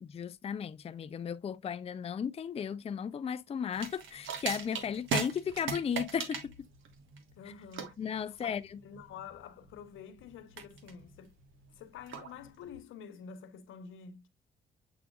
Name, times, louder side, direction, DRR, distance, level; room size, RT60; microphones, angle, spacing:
voice 1, 0.0-6.5 8.0-8.6, left 7 dB, 30° left, 0.4 m, -35 dB
sound 1, 3.7-12.8, right 6 dB, 80° right, 1.6 m, -39 dB
voice 2, 7.4-11.4 11.7-14.3, left 7 dB, 85° left, 1.0 m, -49 dB
8.1 x 4.9 x 2.4 m
cardioid pair, 90°, 20 cm